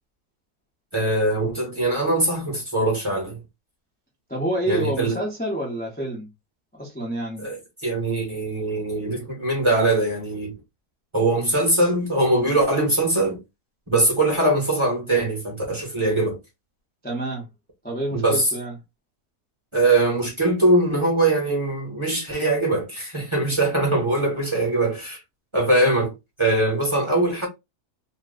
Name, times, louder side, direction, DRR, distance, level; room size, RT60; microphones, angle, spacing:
voice 1, 0.9-3.4 4.7-5.2 7.4-10.5 11.1-13.4 13.9-16.4 18.1-18.5 19.7-25.2 25.5-26.1 26.4-27.5, right 2 dB, 25° right, 0.9 m, -22 dB
voice 2, 4.3-6.3 6.7-7.4 17.0-17.5 17.8-18.7, right 1 dB, 10° left, 0.6 m, -28 dB
2.9 x 2.2 x 3.6 m
omnidirectional pair, 1.7 m